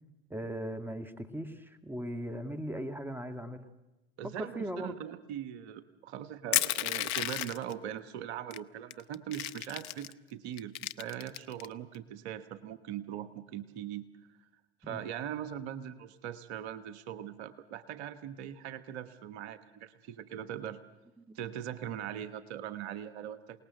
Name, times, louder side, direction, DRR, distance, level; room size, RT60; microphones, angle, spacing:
voice 1, 0.3-3.6 4.4-5.0 14.8-15.0 21.2-21.4, equal, 5° right, 8 dB, 2.0 m, -38 dB
voice 2, 4.2-14.1 14.8-20.8 21.3-23.6, right 10 dB, 70° right, 14 dB, 1.2 m, -41 dB
Crushing, 6.5-7.7 8.5-8.6 8.9-10.1 10.6-11.7, left 15 dB, 55° left, 0.8 m, -32 dB
27.5 x 19.0 x 7.7 m, 1.0 s
hypercardioid pair, 70°, 34 cm